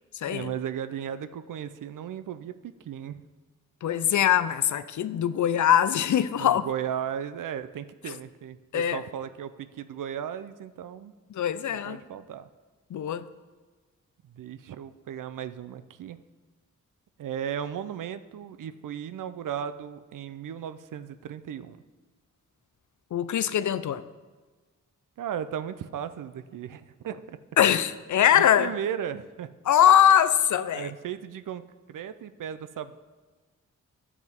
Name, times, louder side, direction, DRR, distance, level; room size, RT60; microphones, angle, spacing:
voice 1, 0.3-3.2 6.4-11.1 11.7-12.5 14.2-16.2 17.2-21.8 25.2-27.4 28.3-29.5 30.7-31.6 31.9-33.0, right 9 dB, 80° right, 0.5 m, -36 dB
voice 2, 3.8-6.7 8.7-9.0 11.3-12.0 12.9-13.2 23.1-24.0 27.6-28.7 29.7-30.9, left 10 dB, 70° left, 0.5 m, -22 dB
13.0 x 6.0 x 3.6 m
cardioid pair, 80°, 32 cm